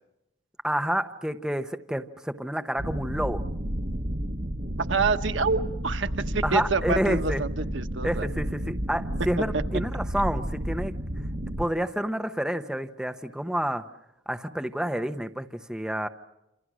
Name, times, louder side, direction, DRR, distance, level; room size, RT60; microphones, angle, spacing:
voice 1, 0.6-3.5 6.4-7.4 8.0-10.9 11.6-13.9 14.3-16.1, equal, 5° right, 7 dB, 0.9 m, -29 dB
sound 1, 2.8-11.6, equal, 45° right, 1.5 m, -31 dB
voice 2, 4.8-8.3 8.6-8.7 9.5-9.6, right 4 dB, 85° right, 9 dB, 1.2 m, -27 dB
27.5 x 27.5 x 6.3 m, 0.92 s
head